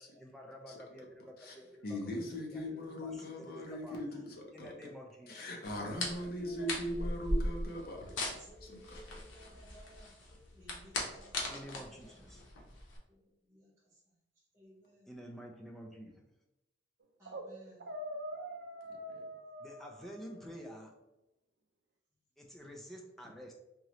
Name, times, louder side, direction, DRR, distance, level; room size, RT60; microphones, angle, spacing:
voice 1, 0.0-2.0 2.5-2.7 3.0-4.0 4.5-5.5 11.5-12.4 15.1-16.3 19.6-21.0 22.4-23.5, equal, ahead, 1 dB, 0.4 m, -50 dB
voice 2, 1.8-4.7 5.3-8.3 8.6-9.0 18.9-19.3, equal, 50° left, 0 dB, 0.8 m, -40 dB
sound 1, 5.6-13.0, left 1 dB, 85° left, 0.9 m, -39 dB
voice 3, 6.2-7.4 7.9-12.5 13.1-13.2 13.5-14.2 14.5-15.1 17.2-17.8, equal, 15° right, -11 dB, 1.0 m, -58 dB
sound 2, 17.0-17.5 17.8-20.6, equal, 60° right, 0.5 m, -44 dB
3.7 x 3.0 x 3.0 m, 0.95 s
head